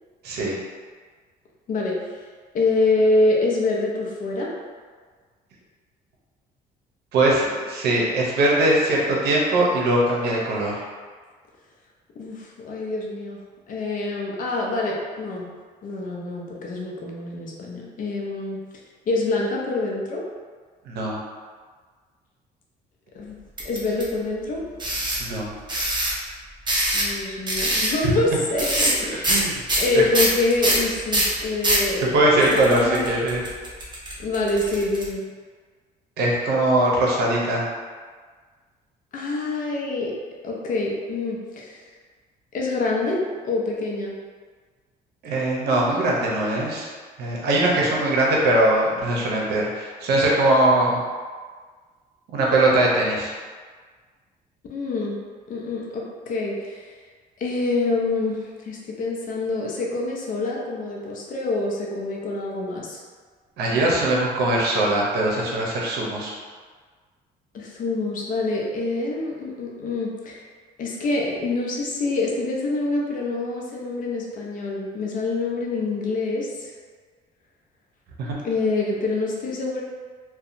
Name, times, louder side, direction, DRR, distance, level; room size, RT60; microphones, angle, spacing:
voice 1, 0.2-0.6 7.1-10.8 20.9-21.2 25.2-25.5 29.3-29.5 29.9-30.0 32.1-33.5 36.2-37.6 45.2-46.9 47.2-51.0 52.3-53.3 63.6-66.3 78.2-78.4, right 1 dB, 75° right, -3 dB, 0.7 m, -21 dB
voice 2, 1.7-2.2 2.5-4.5 12.2-15.5 15.8-18.6 19.1-20.2 23.1-23.3 23.6-24.6 26.9-33.2 34.2-35.3 39.1-40.2 40.4-41.8 42.5-44.2 54.7-55.2 55.5-56.9 57.4-63.0 67.5-70.4 70.8-76.7 78.4-79.8, left 2 dB, 55° left, -2 dB, 0.6 m, -26 dB
sound 1, 23.6-24.0 24.8-25.2 25.7-26.1 26.7-27.2 27.5-27.9 28.6-29.0 29.2-29.4 29.7-31.9 32.4-35.0, right 1 dB, 25° right, 0.7 m, -23 dB
2.7 x 2.2 x 2.5 m, 1.6 s
cardioid pair, 110°, 17 cm